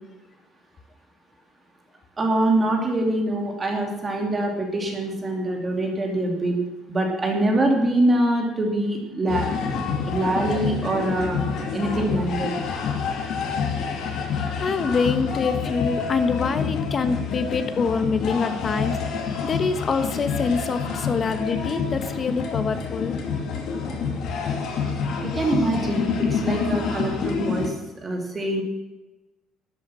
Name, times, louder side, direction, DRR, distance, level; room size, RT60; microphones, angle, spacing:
voice 1, 2.2-6.6 6.9-9.5 10.0-11.4 11.7-12.5 25.2-27.7 28.0-28.6, right 1 dB, 20° right, 2 dB, 2.7 m, -24 dB
sound 1, 9.3-27.7, left 5 dB, 55° left, 2.6 m, -27 dB
voice 2, 14.3-19.0 19.4-23.2, left 5 dB, 30° left, 10 dB, 1.1 m, -25 dB
13.0 x 8.9 x 6.3 m, 1.1 s
cardioid pair, 155°, 0 cm